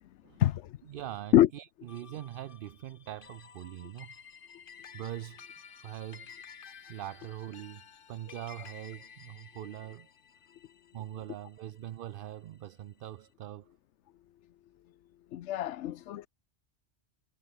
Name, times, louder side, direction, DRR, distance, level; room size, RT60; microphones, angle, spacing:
voice 1, 0.9-4.1 4.9-5.4 5.8-6.3 6.9-7.8 8.1-10.1 10.9-13.7, right 12 dB, 60° right, 0.6 m, -42 dB
sound 1, 1.9-12.5, left 7 dB, 50° left, 1.1 m, -53 dB
voice 2, 15.3-16.3, left 12 dB, 80° left, 0.9 m, -25 dB
omnidirectional pair, 1.2 m